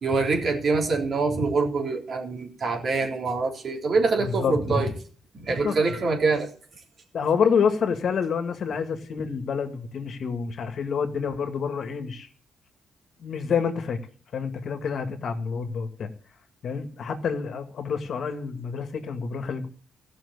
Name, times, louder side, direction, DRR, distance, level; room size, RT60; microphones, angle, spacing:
voice 1, 0.0-4.9 5.3-6.5, right 4 dB, 50° right, 2 dB, 3.5 m, -25 dB
voice 2, 4.2-4.9 5.5-6.0 7.1-12.3 13.2-14.0 14.3-16.1 16.6-19.7, left 6 dB, 65° left, 8 dB, 2.0 m, -28 dB
15.5 x 6.3 x 8.2 m, 0.42 s
cardioid pair, 95°, 0 cm